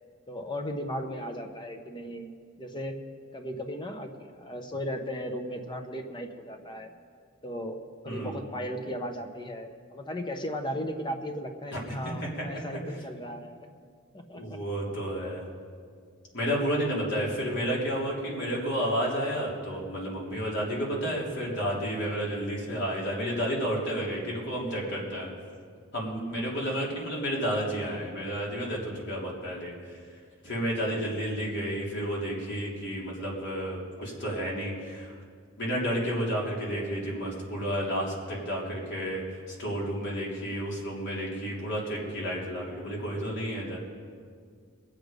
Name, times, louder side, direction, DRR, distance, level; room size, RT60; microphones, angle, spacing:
voice 1, 0.3-2.3 2.6-3.0 3.3-6.9 7.4-13.6 14.1-14.6 17.1-17.3, equal, 25° left, 5 dB, 1.1 m, -36 dB
voice 2, 8.1-8.4 11.7-12.3 14.3-15.5 16.3-25.3 25.9-30.0 30.4-35.1 35.6-43.8, equal, 60° left, -4 dB, 3.4 m, -31 dB
22.5 x 8.2 x 5.2 m, 2.1 s
head